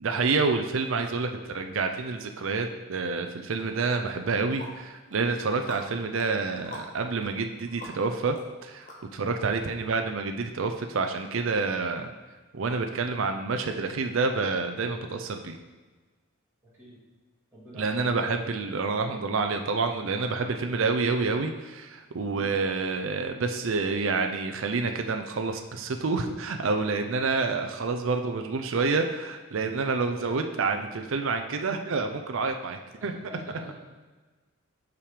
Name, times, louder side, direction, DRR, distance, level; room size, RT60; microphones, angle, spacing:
voice 1, 0.0-8.4 8.6-12.1 12.5-15.6 17.7-33.2, right 4 dB, 60° right, 5 dB, 0.5 m, -28 dB
sound 1, 3.5-3.6 4.1-9.5, left 1 dB, 40° left, 1.3 m, -47 dB
voice 2, 17.5-18.7 22.3-22.5 30.0-30.8 33.0-33.7, equal, 10° right, -12 dB, 2.3 m, -46 dB
5.7 x 5.1 x 4.9 m, 1.3 s
head